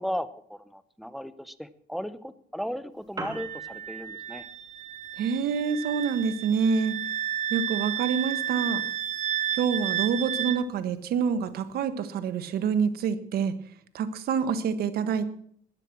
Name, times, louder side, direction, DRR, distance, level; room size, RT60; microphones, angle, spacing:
voice 1, 0.0-4.5, equal, ahead, 13 dB, 0.8 m, -36 dB
Piano, 2.9-11.9, right 2 dB, 20° right, 2.6 m, -49 dB
Wind instrument woodwind instrument, 3.3-10.6, right 10 dB, 45° right, 0.7 m, -32 dB
voice 2, 5.2-7.0 7.5-8.8 9.5-13.5 13.9-15.3, right 6 dB, 65° right, 12 dB, 1.4 m, -27 dB
14.5 x 10.0 x 6.1 m, 0.62 s
cardioid pair, 110°, 17 cm